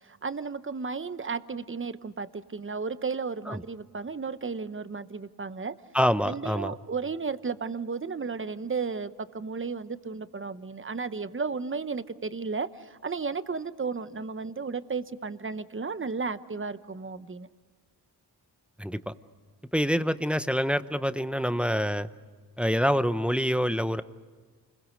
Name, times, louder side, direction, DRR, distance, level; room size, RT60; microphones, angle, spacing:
voice 1, 0.0-5.8 6.2-17.5, right 5 dB, 30° right, 13 dB, 0.9 m, -34 dB
voice 2, 5.9-6.7 18.8-19.1 19.7-22.1 22.6-24.0, equal, 5° right, 12 dB, 0.8 m, -26 dB
29.0 x 21.5 x 6.5 m, 1.5 s
wide cardioid pair, 75°, 40 cm